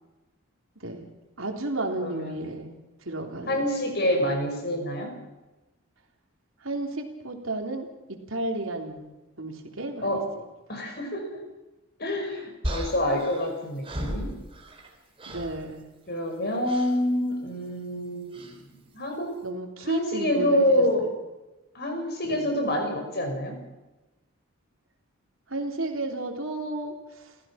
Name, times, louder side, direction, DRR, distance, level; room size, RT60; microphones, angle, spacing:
voice 1, 0.8-1.1 1.4-2.7 3.0-3.7 6.6-7.9 8.3-9.1 9.4-10.2 15.3-15.9 19.4-21.1 22.2-22.5 25.5-26.9, right 2 dB, 75° right, 3 dB, 3.5 m, -32 dB
voice 2, 2.0-2.5 3.5-5.1 10.0-10.3 10.7-11.4 12.0-14.3 16.1-18.6 18.9-19.3 19.8-21.1 21.7-23.6, left 1 dB, 50° left, 4 dB, 5.7 m, -27 dB
sound 1, 12.6-14.9 15.2-15.6 16.6-17.0 18.3-18.6, equal, 25° right, 3.5 m, -35 dB
29.5 x 15.5 x 5.9 m, 1.1 s
head